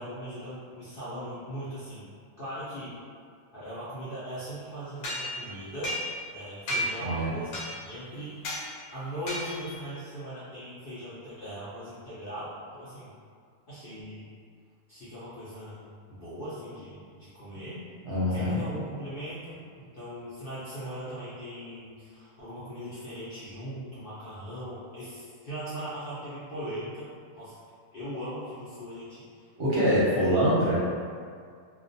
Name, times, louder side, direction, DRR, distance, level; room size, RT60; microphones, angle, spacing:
voice 1, 0.0-2.1 2.4-3.0 3.5-6.0 6.3-13.1 13.7-14.3 14.9-17.8 18.3-27.1 27.3-27.6 27.9-29.5, equal, 55° left, -13 dB, 0.6 m, -39 dB
sound 1, 5.0-6.4 6.7-7.1 7.5-8.0 8.4-8.7 9.3-9.8, equal, 75° left, 1.1 m, -33 dB
voice 2, 7.0-7.3 18.0-18.6 29.6-30.8, equal, 50° right, -11 dB, 0.8 m, -24 dB
2.3 x 2.3 x 2.6 m, 2.2 s
omnidirectional pair, 1.6 m